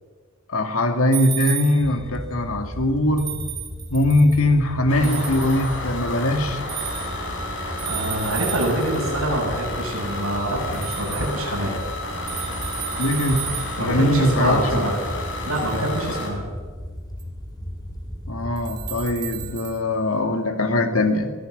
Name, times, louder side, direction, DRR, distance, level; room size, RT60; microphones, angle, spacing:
voice 1, 0.5-3.3 3.9-6.6 13.0-13.5 13.8-14.9 18.3-21.3, left 1 dB, 90° left, 6 dB, 2.2 m, -21 dB
sound 1, 1.1-2.0 3.2-4.4 5.0-5.8 6.7-7.3 7.8-9.1 10.7-11.3 12.3-13.9 15.5-15.8 17.2-17.3 18.6-19.8, right 10 dB, 20° right, 2.6 m, -33 dB
sound 2, 1.8-19.6, equal, 20° left, 3.1 m, -35 dB
sound 3, 4.9-16.3, left 2 dB, 65° left, 5.1 m, -32 dB
voice 2, 7.8-11.7 13.8-14.9 15.4-16.4, right 1 dB, 75° right, -5 dB, 7.5 m, -25 dB
22.5 x 16.5 x 8.0 m, 1.5 s
head